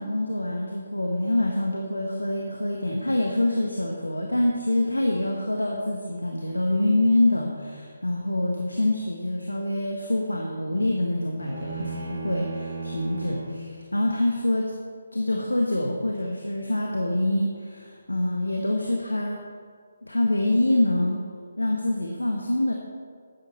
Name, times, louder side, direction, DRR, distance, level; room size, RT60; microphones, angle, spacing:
voice 1, 0.0-14.7 15.1-19.4 20.0-21.2 21.6-22.7, left 1 dB, 80° left, 1 dB, 1.4 m, -25 dB
sound 1, 11.4-13.7, right 3 dB, 20° right, 2.9 m, -34 dB
12.5 x 9.7 x 4.4 m, 2.1 s
figure-of-eight pair, 145°, 0 cm